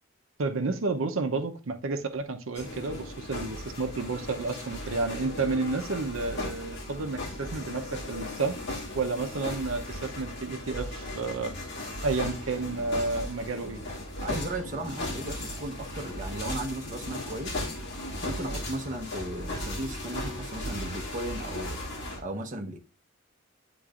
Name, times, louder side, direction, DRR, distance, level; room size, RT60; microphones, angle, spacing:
voice 1, 0.4-8.6 8.9-11.5 12.0-13.8, right 3 dB, 90° right, 0.7 m, -31 dB
sound 1, 2.5-22.2, left 1 dB, 60° left, 2.0 m, -37 dB
voice 2, 14.2-17.6 18.2-21.8 22.2-22.8, right 1 dB, 40° right, 0.9 m, -36 dB
10.0 x 3.8 x 2.4 m
head